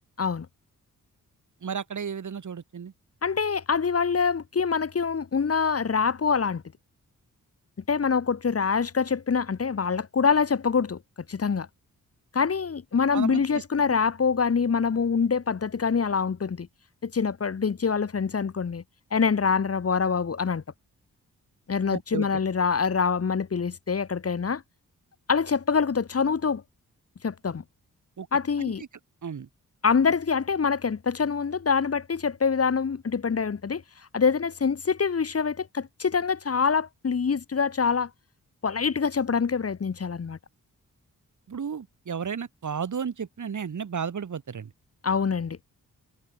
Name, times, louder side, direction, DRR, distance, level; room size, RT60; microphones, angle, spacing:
voice 1, 1.6-2.9 13.1-13.6 21.9-22.3 28.2-28.3 28.6-28.7 29.2-29.5 41.5-44.7, right 7 dB, 60° right, 3.8 m, -33 dB
voice 2, 3.2-6.6 7.9-11.0 11.3-11.7 12.3-16.7 17.0-18.8 19.1-20.6 21.7-24.6 25.3-26.6 27.2-27.6 28.3-28.8 29.8-33.8 34.1-38.1 38.6-40.4 45.0-45.6, left 5 dB, 45° left, 1.7 m, -25 dB
cardioid pair, 65°, 33 cm